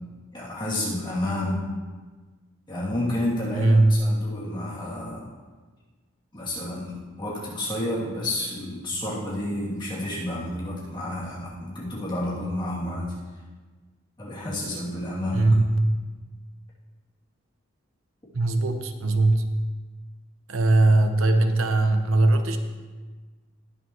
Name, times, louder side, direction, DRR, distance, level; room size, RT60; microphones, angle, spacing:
voice 1, 0.3-1.7 2.7-5.3 6.3-13.1 14.2-15.5, left 1 dB, 25° left, -7 dB, 2.8 m, -30 dB
voice 2, 3.5-4.0 15.3-15.9 18.3-19.4 20.5-22.6, right 2 dB, 90° right, 6 dB, 1.0 m, -20 dB
20.0 x 7.2 x 3.1 m, 1.3 s
head